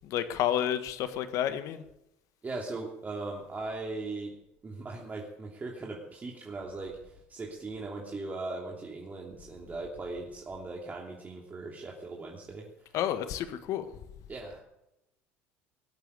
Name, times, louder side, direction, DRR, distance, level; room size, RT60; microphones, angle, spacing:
voice 1, 0.0-1.8 12.9-13.9, left 10 dB, 60° left, 10 dB, 1.6 m, -30 dB
voice 2, 2.4-4.4 4.6-7.0 7.3-12.7 14.3-14.6, right 3 dB, 25° right, -1 dB, 2.9 m, -39 dB
18.5 x 8.5 x 8.2 m, 0.88 s
hypercardioid pair, 75°, 6 cm